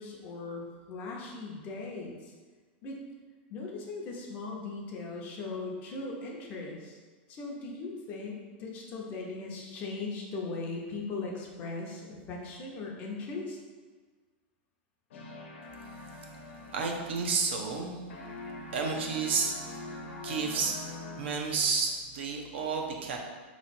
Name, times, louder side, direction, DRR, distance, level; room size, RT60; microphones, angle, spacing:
voice 1, 0.0-2.3 2.8-3.0 3.5-7.0 7.3-13.6, left 3 dB, 25° left, -1 dB, 0.6 m, -39 dB
sound 1, 15.1-17.8 18.1-21.7, left 2 dB, 85° left, 0.8 m, -44 dB
voice 2, 16.7-18.0 18.7-19.9 20.2-20.8 21.2-23.2, right 5 dB, 75° right, 2 dB, 0.7 m, -31 dB
3.8 x 3.0 x 4.2 m, 1.4 s
supercardioid pair, 175°, 6 cm